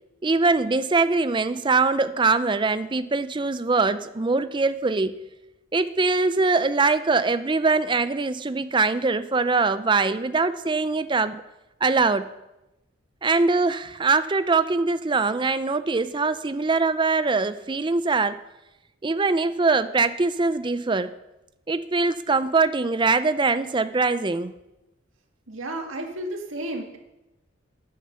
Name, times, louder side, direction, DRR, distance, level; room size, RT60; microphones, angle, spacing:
voice 1, 0.2-5.2 5.7-11.4 11.8-12.3 13.2-18.4 19.0-21.1 21.7-24.5, right 3 dB, 25° right, 13 dB, 0.5 m, -22 dB
voice 2, 25.5-27.0, right 1 dB, 85° right, 3 dB, 2.0 m, -32 dB
10.5 x 9.6 x 6.8 m, 0.97 s
head